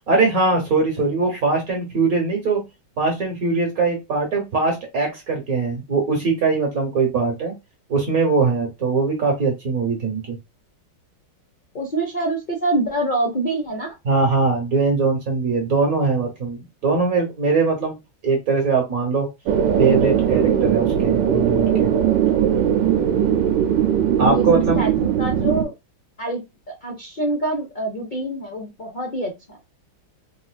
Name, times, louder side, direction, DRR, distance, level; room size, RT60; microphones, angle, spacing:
voice 1, 0.1-2.6 3.0-7.5 7.9-10.4 14.0-17.9 18.2-19.3 19.8-21.9 24.2-24.8, right 4 dB, 55° right, 2 dB, 1.2 m, -21 dB
voice 2, 11.7-13.9 24.3-25.7 26.2-26.4 26.8-29.6, right 1 dB, 75° left, 0 dB, 0.4 m, -25 dB
sound 1, 19.5-25.6, right 9 dB, 70° right, 1.3 m, -19 dB
4.0 x 2.6 x 2.3 m, 0.22 s
omnidirectional pair, 2.2 m